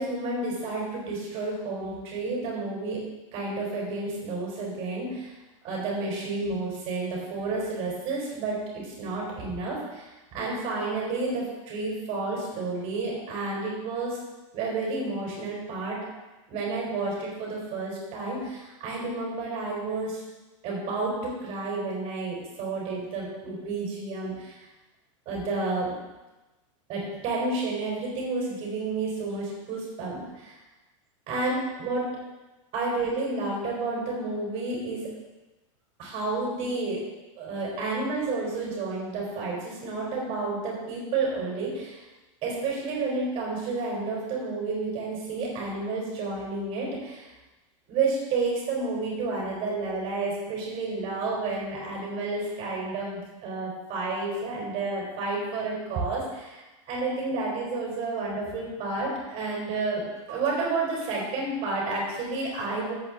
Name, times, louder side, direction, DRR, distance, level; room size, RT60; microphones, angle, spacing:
voice 1, 0.0-3.0 3.3-5.3 5.6-14.2 14.5-16.0 16.5-20.2 20.6-24.6 25.3-26.0 26.9-30.6 31.3-32.1 32.7-35.1 36.0-37.0 37.4-42.0 42.4-47.3 47.9-62.9, right 3 dB, 35° right, -4 dB, 4.1 m, -30 dB
13.5 x 8.3 x 4.0 m, 1.1 s
supercardioid pair, 160°, 17 cm